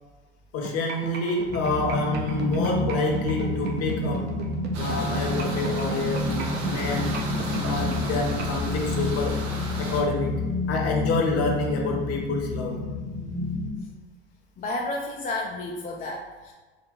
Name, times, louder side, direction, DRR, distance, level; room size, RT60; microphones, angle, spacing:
voice 1, 0.5-4.4 4.8-7.2 7.5-9.4 9.8-12.8, left 2 dB, 45° left, 0 dB, 1.0 m, -28 dB
sound 1, 0.6-8.6, right 5 dB, 30° right, 0.6 m, -35 dB
sound 2, 1.5-13.7, left 2 dB, 75° left, 1.3 m, -29 dB
sound 3, 4.7-10.0, right 2 dB, 70° right, 0.9 m, -35 dB
voice 2, 14.6-16.5, left 2 dB, 25° left, -1 dB, 0.5 m, -31 dB
3.9 x 2.1 x 4.0 m, 1.3 s
hypercardioid pair, 75°, 34 cm